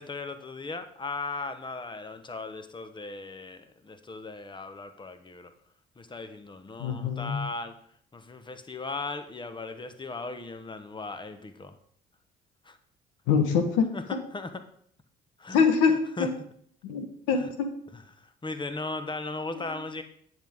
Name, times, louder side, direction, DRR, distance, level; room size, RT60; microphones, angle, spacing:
voice 1, 0.0-5.5 6.0-7.7 8.1-11.7 12.6-12.8 13.9-14.0 14.3-14.5 15.4-15.6 16.2-16.3 17.4-17.5 18.2-20.0, left 3 dB, 20° left, 9 dB, 1.2 m, -37 dB
voice 2, 6.8-7.4 13.3-14.2 15.5-16.3 16.8-17.7 19.5-19.8, left 5 dB, 85° left, 6 dB, 1.3 m, -25 dB
9.7 x 8.0 x 3.7 m, 0.63 s
supercardioid pair, 70°, 21 cm